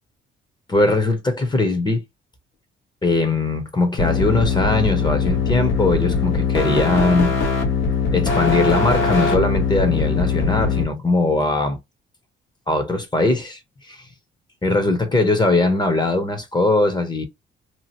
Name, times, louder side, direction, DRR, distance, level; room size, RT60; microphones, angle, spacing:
voice 1, 0.7-2.0 3.0-7.4 8.1-11.8 12.7-13.6 13.9-14.0 14.6-17.2, left 2 dB, 20° left, 0.9 m, -20 dB
sound 1, 4.0-10.8, left 5 dB, 75° left, 1.1 m, -21 dB
2.9 x 2.4 x 2.9 m
cardioid pair, 90°, 20 cm